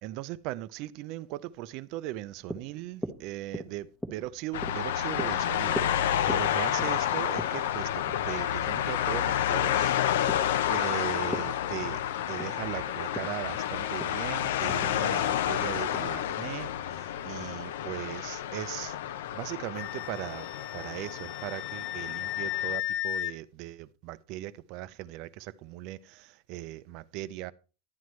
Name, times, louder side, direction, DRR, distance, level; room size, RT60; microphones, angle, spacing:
voice 1, 0.0-10.2 10.7-12.0 12.3-19.0 19.3-27.5, right 15 dB, 45° right, 0.5 m, -39 dB
sound 1, 2.1-16.7, equal, 5° left, 1.0 m, -43 dB
sound 2, 4.5-22.8, left 10 dB, 85° left, 0.7 m, -30 dB
Wind instrument woodwind instrument, 19.8-23.3, left 14 dB, 40° left, 0.7 m, -35 dB
11.5 x 9.4 x 3.2 m
supercardioid pair, 165°, 0 cm